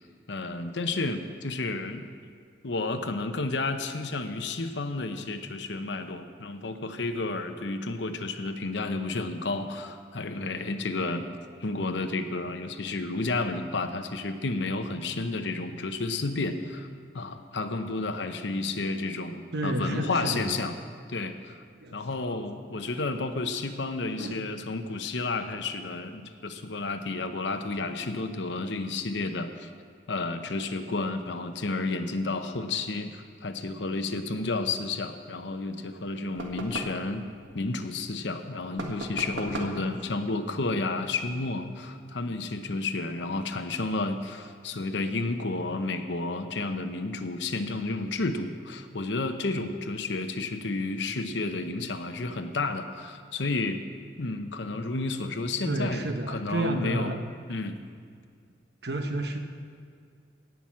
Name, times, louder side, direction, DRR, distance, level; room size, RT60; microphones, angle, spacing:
voice 1, 0.3-2.0 2.6-11.2 11.6-16.9 17.1-20.7 21.1-21.6 21.9-29.7 30.1-37.2 37.5-53.8 54.2-57.2 57.5-57.8, left 3 dB, 75° left, 8 dB, 0.9 m, -31 dB
voice 2, 19.5-20.6 21.8-22.0 22.3-22.4 24.1-24.4 55.6-57.2 58.8-59.4, right 1 dB, 60° right, 5 dB, 1.1 m, -31 dB
sound 1, 36.4-37.0 38.8-39.8, right 1 dB, 85° right, 1.7 m, -36 dB
17.5 x 6.1 x 7.4 m, 2.1 s
head